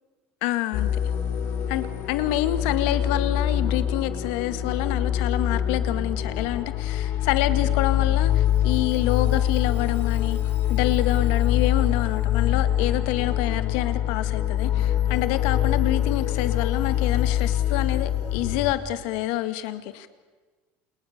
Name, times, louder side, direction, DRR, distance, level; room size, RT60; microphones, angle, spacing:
voice 1, 0.4-0.9 1.7-10.4 10.7-20.1, left 14 dB, 70° left, 11 dB, 2.0 m, -27 dB
sound 1, 0.7-18.7, left 10 dB, 45° left, 3.9 m, -24 dB
29.0 x 29.0 x 6.8 m, 1.3 s
cardioid pair, 165°, 5 cm